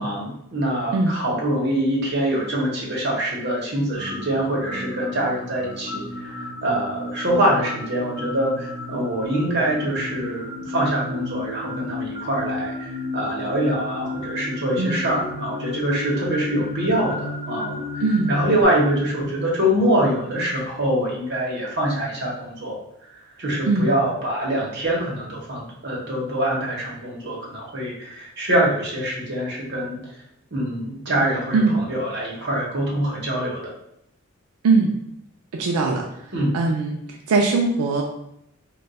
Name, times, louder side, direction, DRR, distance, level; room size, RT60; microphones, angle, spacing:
voice 1, 0.0-17.8 18.3-22.8 23.4-30.0 30.5-33.7 36.3-36.5, right 1 dB, 50° right, -4 dB, 0.9 m, -24 dB
sound 1, 3.9-18.6, left 2 dB, 20° right, 0.8 m, -33 dB
voice 2, 18.0-18.3 23.7-23.9 31.5-31.8 34.6-34.9 35.5-36.1 36.5-37.0 37.3-38.0, right 3 dB, 90° right, 1 dB, 0.4 m, -20 dB
2.3 x 2.2 x 3.9 m, 0.77 s
head